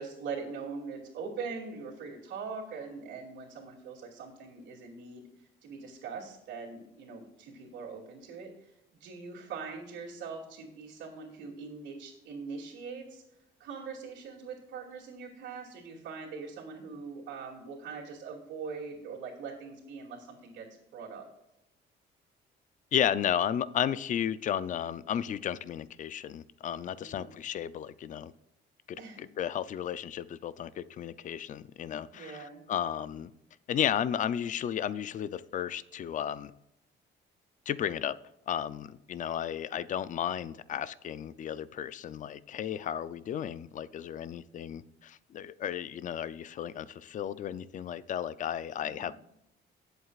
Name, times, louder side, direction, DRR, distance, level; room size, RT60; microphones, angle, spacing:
voice 1, 0.0-5.3 5.6-8.7 9.0-13.2 13.6-20.7 20.9-21.3 27.0-27.4 29.0-29.2 32.1-32.6 48.8-49.1, right 5 dB, 80° right, -5 dB, 2.6 m, -42 dB
voice 2, 22.9-28.3 28.9-33.3 33.7-36.5 37.7-38.2 38.5-49.1, left 9 dB, 45° left, 16 dB, 0.5 m, -33 dB
18.5 x 7.9 x 2.5 m, 0.84 s
cardioid pair, 150°, 19 cm